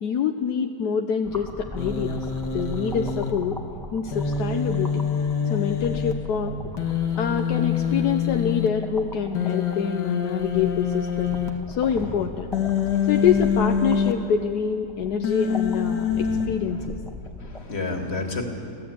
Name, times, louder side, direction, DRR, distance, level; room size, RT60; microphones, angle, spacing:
voice 1, 0.0-2.2 2.5-3.6 3.9-5.1 5.5-6.6 7.2-11.4 11.7-12.5 13.1-17.0, left 7 dB, 75° left, 5 dB, 1.3 m, -26 dB
sound 1, 1.2-17.6, equal, ahead, 1.6 m, -39 dB
Human voice, 1.8-3.3 4.1-6.1 6.8-8.7 9.3-11.5 12.5-14.1 15.2-16.5, left 7 dB, 90° left, 2.1 m, -25 dB
voice 2, 16.1-16.4 16.8-16.9 17.4-18.4, left 3 dB, 40° left, 2 dB, 2.5 m, -31 dB
24.5 x 16.0 x 8.6 m, 2.7 s
omnidirectional pair, 1.8 m